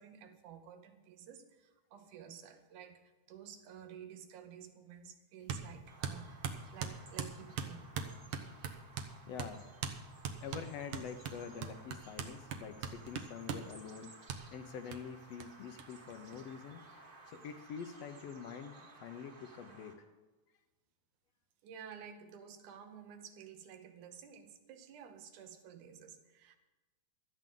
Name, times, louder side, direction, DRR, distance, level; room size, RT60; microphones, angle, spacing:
voice 1, 0.0-8.1 21.6-26.6, right 8 dB, 80° right, 7 dB, 2.6 m, -52 dB
sound 1, 5.5-5.7 6.0-9.1 9.4-9.5 9.8-10.0 10.2-13.7 14.3-14.4 14.9-15.0 15.4-15.5 15.8-15.9 16.1-16.8, right 7 dB, 65° right, 1.4 m, -40 dB
Bird vocalization bird call bird song, 5.9-19.9, right 3 dB, 35° right, 1.8 m, -57 dB
voice 2, 9.3-9.6 10.4-14.2 14.5-16.8 17.3-20.0, left 6 dB, 70° left, 8 dB, 1.7 m, -46 dB
17.0 x 12.5 x 3.9 m, 1.2 s
omnidirectional pair, 3.6 m